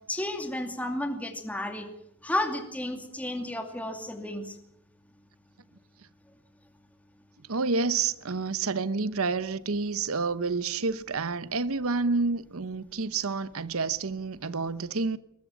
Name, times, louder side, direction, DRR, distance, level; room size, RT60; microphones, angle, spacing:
voice 1, 0.1-1.9 2.2-4.6, left 1 dB, 5° left, 2.5 m, -32 dB
voice 2, 7.5-15.2, right 4 dB, 80° right, 0.9 m, -29 dB
22.0 x 20.5 x 7.3 m
head